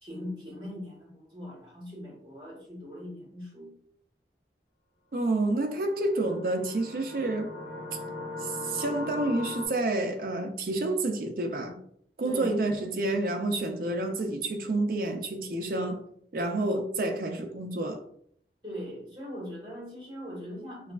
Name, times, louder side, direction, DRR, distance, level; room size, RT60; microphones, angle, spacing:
voice 1, 0.0-3.7 12.2-12.7 18.6-20.9, equal, 25° right, 1.4 m, -40 dB
voice 2, 5.1-7.5 8.4-11.8 12.2-16.0 16.3-18.0, right 2 dB, 50° right, 0.5 m, -29 dB
sound 1, 5.7-9.7, left 2 dB, 70° left, 1.4 m, -39 dB
3.4 x 3.1 x 2.4 m
head